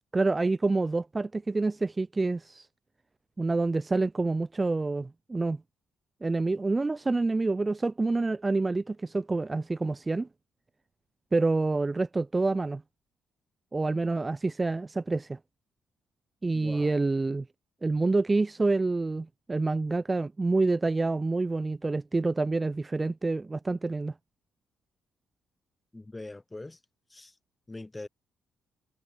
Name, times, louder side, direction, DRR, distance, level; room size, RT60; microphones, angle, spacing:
voice 1, 0.1-2.7 3.4-5.6 6.2-10.3 11.3-12.8 13.7-15.4 16.4-17.4 17.8-24.1, right 3 dB, 20° right, 1.2 m, -27 dB
voice 2, 16.5-17.0 25.9-26.8 27.1-27.3 27.7-28.1, left 2 dB, 15° left, 6.4 m, -42 dB
cardioid pair, 90°, 0 cm